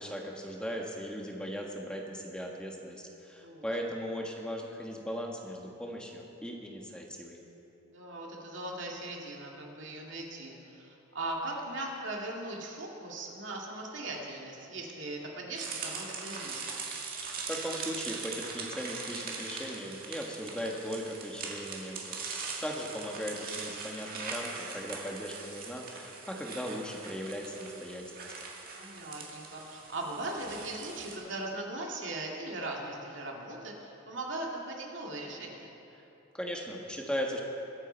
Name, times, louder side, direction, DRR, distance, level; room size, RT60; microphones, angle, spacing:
voice 1, 0.0-7.4 17.5-22.2 22.6-28.3 36.0-36.1 36.3-37.4, equal, 5° left, 0 dB, 1.3 m, -38 dB
voice 2, 7.8-16.8 28.7-35.7, right 2 dB, 65° right, -1 dB, 2.2 m, -39 dB
sound 1, 15.6-31.2, right 4 dB, 45° right, 1.9 m, -41 dB
21.5 x 9.2 x 4.4 m, 2.9 s
head